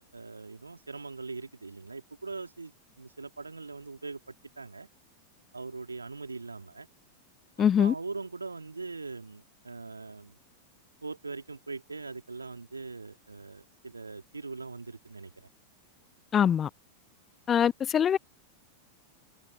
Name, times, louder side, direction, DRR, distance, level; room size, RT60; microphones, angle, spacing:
voice 1, 0.0-4.9 5.5-6.9 7.6-10.4 11.0-15.5, right 3 dB, 80° right, 3.6 m, -41 dB
voice 2, 7.6-7.9 16.3-16.7 17.5-18.2, left 8 dB, 25° left, 0.7 m, -23 dB
figure-of-eight pair, 90°, 0 cm